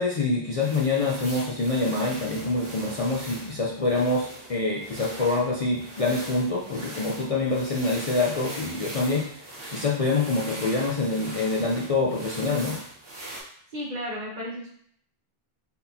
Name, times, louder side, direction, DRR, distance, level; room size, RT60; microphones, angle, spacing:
voice 1, 0.0-9.4 9.7-12.8, left 3 dB, 45° left, -3 dB, 0.5 m, -26 dB
sound 1, 0.6-13.4, right 1 dB, 70° right, 1.3 m, -41 dB
voice 2, 13.7-14.7, equal, 45° right, -3 dB, 1.0 m, -33 dB
3.9 x 3.6 x 2.7 m, 0.64 s
omnidirectional pair, 1.0 m